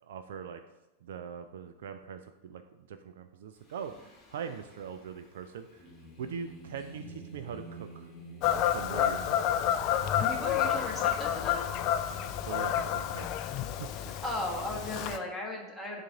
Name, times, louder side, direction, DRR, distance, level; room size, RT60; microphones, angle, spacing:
voice 1, 0.0-0.6 1.0-5.9 6.2-8.1 8.7-9.4 10.2-10.3 12.5-13.5 13.8-13.9, right 7 dB, 60° right, 8 dB, 0.3 m, -42 dB
Singing, 3.6-14.0, equal, 15° left, 1.3 m, -49 dB
Fowl / Bird vocalization bird call bird song, 8.4-15.2, left 10 dB, 40° left, 0.3 m, -30 dB
voice 2, 10.2-11.7 14.2-16.0, left 1 dB, ahead, -1 dB, 1.3 m, -36 dB
7.4 x 2.5 x 5.5 m, 1.0 s
figure-of-eight pair, 90°, 0 cm